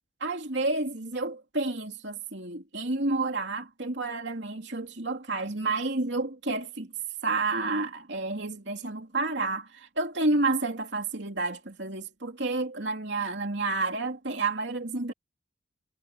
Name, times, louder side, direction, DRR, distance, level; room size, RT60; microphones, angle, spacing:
voice 1, 0.2-6.9 7.2-15.1, right 3 dB, 75° right, 2.9 m, -30 dB
head